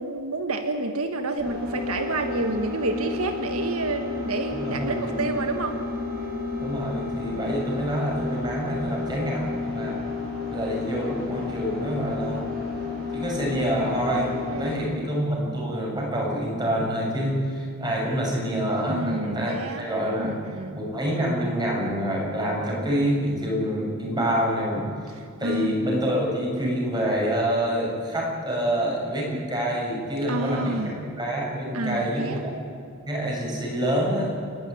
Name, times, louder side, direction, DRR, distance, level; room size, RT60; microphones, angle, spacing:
voice 1, 0.0-5.8 7.3-7.5 14.5-15.1 18.9-19.8 20.2-20.8 25.4-25.7 30.3-30.9 31.7-32.4, right 2 dB, 80° right, 6 dB, 1.5 m, -29 dB
sound 1, 1.4-14.9, left 4 dB, 45° right, 7.4 m, -32 dB
voice 2, 4.5-5.1 6.6-10.0 10.5-12.4 13.1-20.4 20.7-24.8 25.4-30.8 31.2-32.5 33.1-34.4, equal, 20° right, -2 dB, 7.0 m, -27 dB
29.5 x 12.5 x 9.7 m, 2.4 s
head